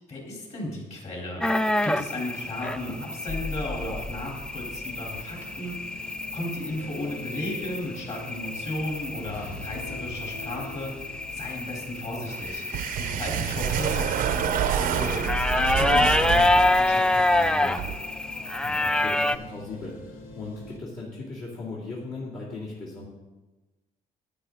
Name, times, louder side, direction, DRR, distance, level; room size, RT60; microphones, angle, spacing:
voice 1, 0.1-1.5 1.8-17.8, left 1 dB, 50° left, -2 dB, 3.7 m, -35 dB
sound 1, 1.4-19.4, left 2 dB, 5° left, 0.3 m, -27 dB
sound 2, 2.3-20.8, left 2 dB, 80° left, 1.5 m, -42 dB
sound 3, 12.3-18.0, right 9 dB, 70° right, 0.6 m, -28 dB
voice 2, 13.1-13.4 18.6-23.1, left 3 dB, 65° left, -7 dB, 2.6 m, -38 dB
9.8 x 9.3 x 3.8 m, 1.2 s
cardioid pair, 85°, 15 cm